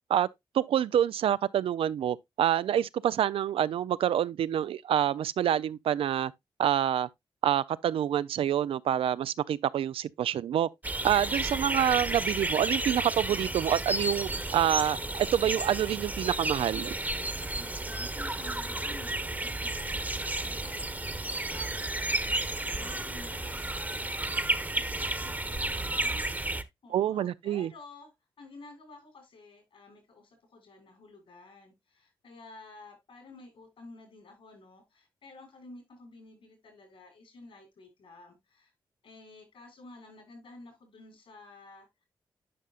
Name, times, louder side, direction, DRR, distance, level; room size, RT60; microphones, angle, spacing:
voice 1, 0.5-6.3 6.6-7.1 7.4-10.7 11.0-16.9 26.9-27.7, right 10 dB, 80° right, 0.4 m, -27 dB
sound 1, 10.8-26.6, right 2 dB, 20° right, 1.1 m, -32 dB
voice 2, 17.2-24.3 24.8-26.5 26.8-38.7 39.0-42.0, left 3 dB, 75° left, 6.0 m, -52 dB
11.0 x 5.6 x 2.4 m
cardioid pair, 55°, 9 cm